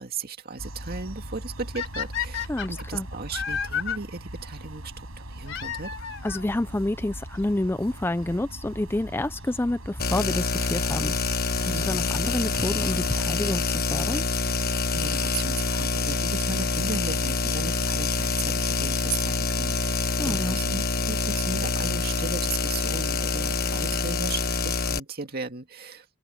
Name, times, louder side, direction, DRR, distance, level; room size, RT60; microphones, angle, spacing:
voice 1, 0.0-5.9 11.7-12.1 14.9-26.1, right 4 dB, 45° right, 2.2 m, -36 dB
sound 1, 0.6-13.3, right 1 dB, 80° right, 7.2 m, -40 dB
sound 2, 1.7-4.0 5.4-6.5 7.4-7.5 8.2-8.3 8.5-8.6 10.5-10.7 13.6-13.7 14.7-14.8 16.2-16.3 16.6-16.7 17.0-17.1 17.2-17.3 17.5-17.6 17.8-17.9 18.1-18.2, left 8 dB, 60° left, 4.3 m, -32 dB
voice 2, 2.5-3.1 6.2-11.2 11.6-14.2 20.2-20.6, left 1 dB, 10° left, 0.4 m, -29 dB
sound 3, 10.0-25.0, left 4 dB, 45° left, 1.3 m, -26 dB
head